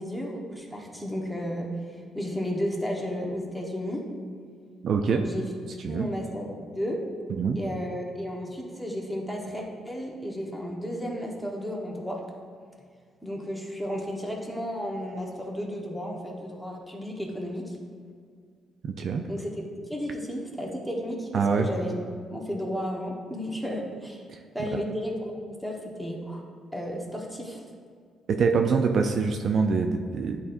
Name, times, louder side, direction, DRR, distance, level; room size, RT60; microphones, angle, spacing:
voice 1, 0.0-1.7 2.1-4.1 5.2-5.5 5.9-7.0 7.5-12.2 13.2-17.8 19.3-21.9 22.3-24.2 24.5-26.4 26.7-27.6, equal, ahead, -1 dB, 1.2 m, -33 dB
voice 2, 4.8-5.2 5.8-6.1 7.4-7.6 18.8-19.2 21.3-21.7 24.7-24.8 28.3-30.4, right 5 dB, 60° right, 5 dB, 0.4 m, -24 dB
10.5 x 4.1 x 2.6 m, 2.1 s
cardioid pair, 90°, 0 cm